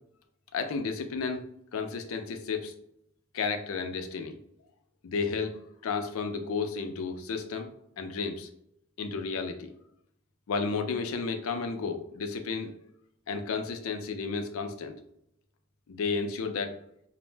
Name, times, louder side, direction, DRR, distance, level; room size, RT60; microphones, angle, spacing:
voice 1, 0.5-1.5 1.7-2.7 3.3-4.4 5.0-8.5 9.0-9.7 10.5-12.7 13.3-15.0 15.9-16.8, left 4 dB, 85° left, 7 dB, 0.4 m, -32 dB
2.5 x 2.0 x 3.2 m, 0.74 s
head